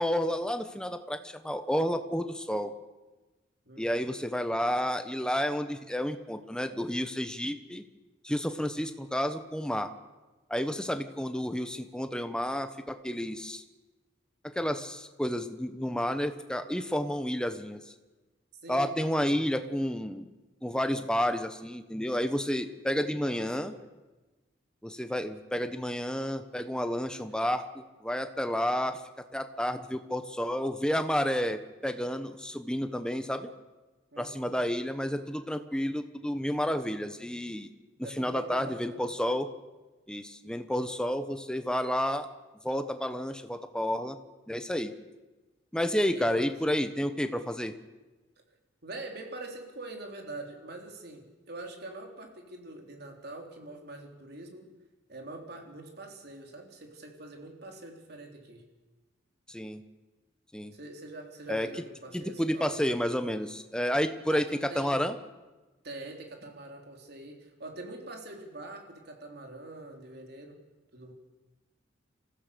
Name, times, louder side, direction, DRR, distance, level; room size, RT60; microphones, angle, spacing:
voice 1, 0.0-2.7 3.8-7.8 8.2-9.9 10.5-13.6 14.4-17.8 18.7-20.3 20.6-23.7 24.8-29.0 29.3-33.5 34.2-37.7 38.2-39.5 40.1-42.3 42.6-44.2 44.5-44.9 45.7-47.7 59.5-59.8 60.5-60.7 61.5-61.7 62.1-65.2, equal, 5° left, 8 dB, 1.1 m, -30 dB
voice 2, 18.6-19.5 23.0-23.9 34.1-34.5 38.0-39.0 46.1-46.5 48.8-54.7 55.1-58.6 60.7-62.7 64.3-65.0 65.8-70.6 70.9-71.1, right 2 dB, 55° right, 2 dB, 3.6 m, -44 dB
26.5 x 15.5 x 7.0 m, 1.2 s
head